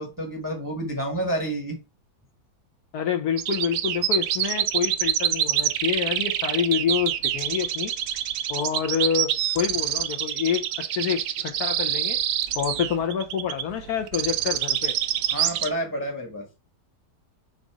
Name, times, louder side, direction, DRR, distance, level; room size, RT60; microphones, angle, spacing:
voice 1, 0.0-1.8 15.3-16.5, right 1 dB, 15° right, 0.9 m, -29 dB
voice 2, 2.9-7.9 8.5-12.2 12.5-14.9, left 8 dB, 65° left, 1.3 m, -27 dB
sound 1, 3.4-15.7, right 11 dB, 80° right, 1.2 m, -26 dB
5.2 x 4.0 x 4.7 m
omnidirectional pair, 1.9 m